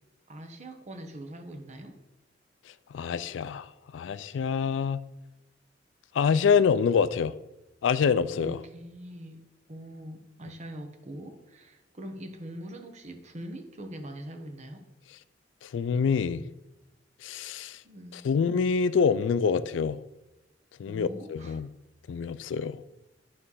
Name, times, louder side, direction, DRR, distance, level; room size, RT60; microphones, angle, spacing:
voice 1, 0.3-2.0 8.3-9.4 9.7-14.9 17.8-18.2 20.9-21.6, right 1 dB, 40° right, 0.9 m, -42 dB
voice 2, 2.9-5.0 6.1-7.3 7.8-8.6 15.6-16.4 17.2-17.8 18.1-20.0 20.8-21.7 22.1-22.8, left 6 dB, 85° left, 0.3 m, -26 dB
9.6 x 3.2 x 5.5 m
head